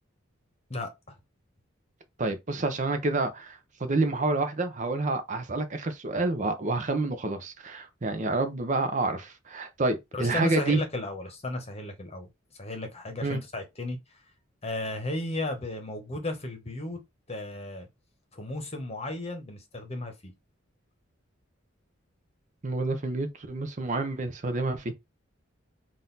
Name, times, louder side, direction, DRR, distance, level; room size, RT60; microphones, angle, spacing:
voice 1, 0.7-1.2 10.1-14.2 14.6-17.0 17.3-17.9 18.3-20.3, left 2 dB, 30° left, 1.1 m, -35 dB
voice 2, 2.2-10.8 13.2-13.4 22.6-25.0, right 2 dB, 40° right, 0.6 m, -28 dB
3.9 x 2.6 x 4.0 m
head